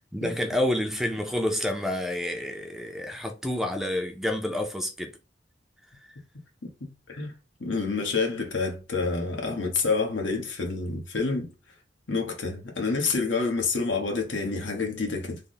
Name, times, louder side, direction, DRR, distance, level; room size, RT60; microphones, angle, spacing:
voice 1, 0.1-5.1, left 1 dB, ahead, 0.4 m, -29 dB
voice 2, 6.8-11.5 12.1-15.4, left 4 dB, 85° left, 1.0 m, -28 dB
3.3 x 2.1 x 3.8 m
head